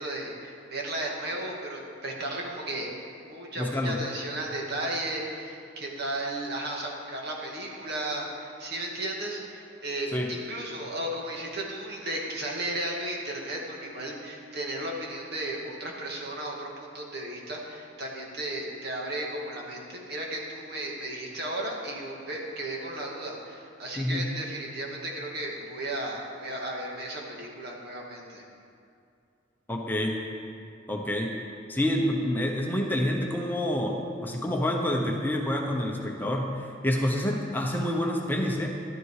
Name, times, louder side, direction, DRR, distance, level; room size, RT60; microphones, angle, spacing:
voice 1, 0.0-2.9 3.3-28.4, right 1 dB, 55° right, -2 dB, 2.1 m, -34 dB
voice 2, 3.6-4.0 10.1-10.3 24.0-24.2 29.7-30.2 30.9-31.4 31.7-38.7, left 1 dB, 10° left, 0 dB, 0.9 m, -28 dB
13.0 x 12.0 x 4.9 m, 2.4 s
head